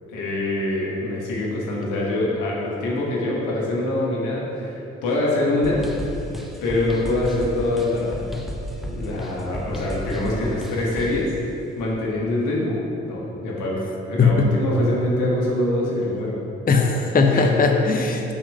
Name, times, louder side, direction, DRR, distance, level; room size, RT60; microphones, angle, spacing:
voice 1, 0.1-5.8 6.6-8.3 8.9-11.3 11.8-12.8 13.0-13.8 14.1-16.4 17.3-17.5, left 1 dB, 80° left, -4 dB, 1.3 m, -24 dB
sound 1, 5.6-11.3, equal, ahead, 0.8 m, -33 dB
voice 2, 14.2-14.5 16.7-18.3, left 4 dB, 30° left, 3 dB, 0.7 m, -18 dB
5.7 x 4.2 x 5.3 m, 3.0 s
hypercardioid pair, 45°, 31 cm